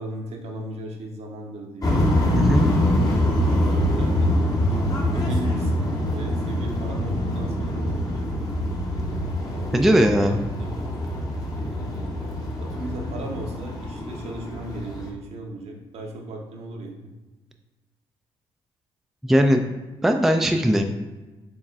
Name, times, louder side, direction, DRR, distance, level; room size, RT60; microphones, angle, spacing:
voice 1, 0.0-1.9 3.5-8.6 9.7-10.9 11.6-16.9, right 2 dB, 60° right, 1 dB, 0.7 m, -36 dB
sound 1, 1.8-15.1, left 1 dB, 30° left, 0.8 m, -24 dB
voice 2, 2.3-2.7 9.7-10.4 19.2-19.6 20.0-20.8, equal, ahead, 4 dB, 0.3 m, -19 dB
4.7 x 3.0 x 2.4 m, 1.1 s
supercardioid pair, 65°, 12 cm